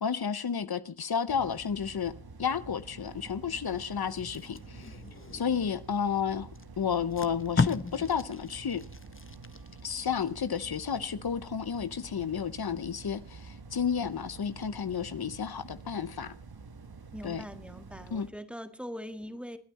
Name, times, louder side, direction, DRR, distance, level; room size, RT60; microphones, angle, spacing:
voice 1, 0.0-5.0 5.3-6.5 6.8-8.9 9.8-16.4 17.2-17.4 18.1-18.3, left 7 dB, 80° left, 0.8 m, -32 dB
sound 1, 1.3-18.3, right 4 dB, 80° right, 1.3 m, -48 dB
Packing tape duct tape, 4.2-5.8 6.5-6.6 7.0-10.0 10.4-10.6, left 4 dB, 35° left, 1.0 m, -34 dB
voice 2, 17.1-19.6, equal, 5° right, 1.8 m, -42 dB
26.5 x 9.3 x 4.1 m
wide cardioid pair, 40°, 37 cm